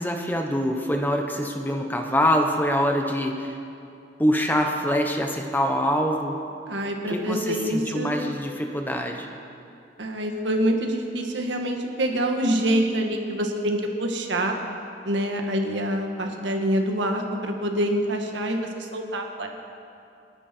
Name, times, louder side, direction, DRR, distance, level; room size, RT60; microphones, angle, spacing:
voice 1, 0.0-3.6 4.2-6.4 7.1-9.3, equal, 10° left, 3 dB, 1.3 m, -24 dB
voice 2, 6.7-8.2 10.0-14.6 15.1-19.5, right 1 dB, 85° right, 3 dB, 1.8 m, -26 dB
28.5 x 10.0 x 4.6 m, 2.6 s
head